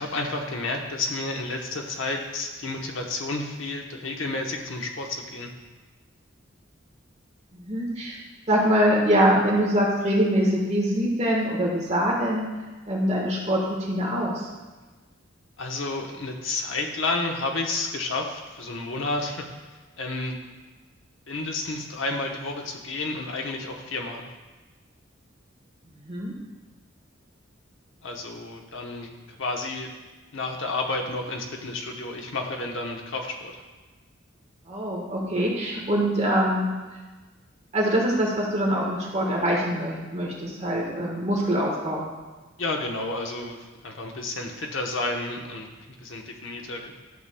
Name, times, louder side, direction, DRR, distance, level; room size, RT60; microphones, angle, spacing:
voice 1, 0.0-5.5 15.6-19.5 20.0-20.3 21.3-24.3 28.0-29.9 30.3-33.6 42.6-46.9, left 2 dB, 70° left, 2 dB, 1.0 m, -31 dB
voice 2, 7.5-8.2 8.5-12.5 12.9-14.5 26.0-26.3 34.7-36.7 37.7-42.0, equal, 35° right, -3 dB, 1.4 m, -24 dB
11.5 x 6.9 x 2.3 m, 1.3 s
head